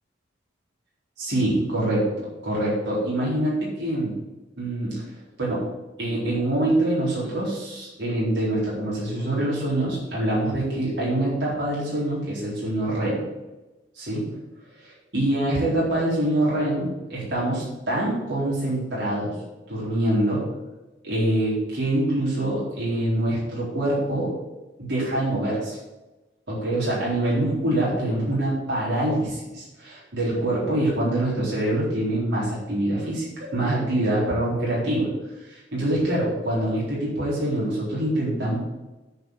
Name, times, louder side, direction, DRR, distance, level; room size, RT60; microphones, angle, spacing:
voice 1, 1.2-4.2 4.6-5.1 5.4-5.7 6.0-13.3 14.0-14.3 14.8-19.4 19.7-20.5 21.0-24.3 24.8-25.8 26.5-35.1 35.5-38.6, right 1 dB, 65° right, -6 dB, 3.9 m, -25 dB
9.7 x 4.9 x 8.0 m, 1.1 s
head